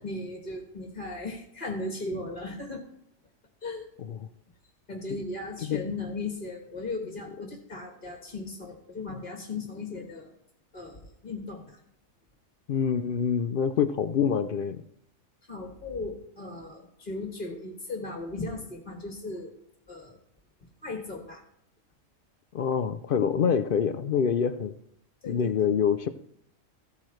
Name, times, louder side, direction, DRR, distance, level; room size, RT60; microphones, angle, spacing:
voice 1, 0.0-2.8 3.6-3.9 4.9-10.3 10.7-11.8 15.5-19.5 19.9-20.2 20.8-21.4 25.2-25.7, left 2 dB, 40° left, 2 dB, 1.6 m, -37 dB
voice 2, 12.7-14.8 22.5-24.7 25.3-26.1, left 7 dB, 65° left, 11 dB, 0.5 m, -26 dB
15.5 x 8.6 x 3.2 m, 0.69 s
omnidirectional pair, 1.4 m